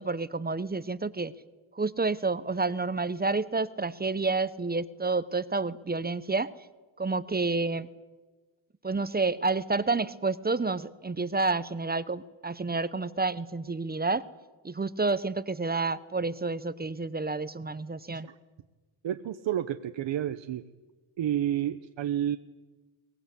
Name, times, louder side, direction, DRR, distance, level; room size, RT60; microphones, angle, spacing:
voice 1, 0.0-1.3 1.7-6.5 7.0-7.9 8.8-14.2 14.6-18.3, right 3 dB, 20° right, 16 dB, 0.9 m, -29 dB
voice 2, 19.0-20.7 21.2-22.4, right 11 dB, 60° right, 9 dB, 1.1 m, -30 dB
23.0 x 19.0 x 8.4 m, 1.2 s
cardioid pair, 95°, 50 cm